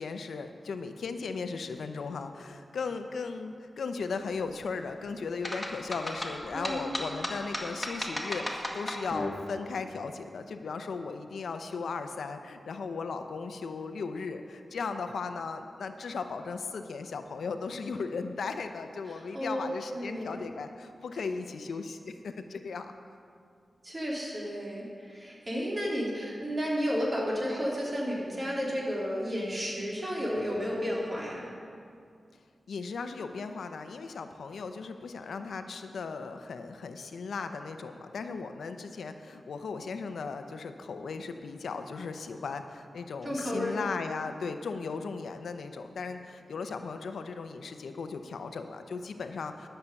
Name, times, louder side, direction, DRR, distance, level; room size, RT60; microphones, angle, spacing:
voice 1, 0.0-22.9 32.7-49.7, left 4 dB, 90° left, 7 dB, 0.6 m, -37 dB
sound 1, 5.4-9.3, left 1 dB, 15° left, 1.7 m, -34 dB
voice 2, 6.5-6.9 19.1-19.7 19.9-20.4 23.8-31.5 43.2-43.8, equal, 30° right, -5 dB, 3.5 m, -32 dB
12.0 x 6.7 x 6.9 m, 2.3 s
cardioid pair, 60°, 0 cm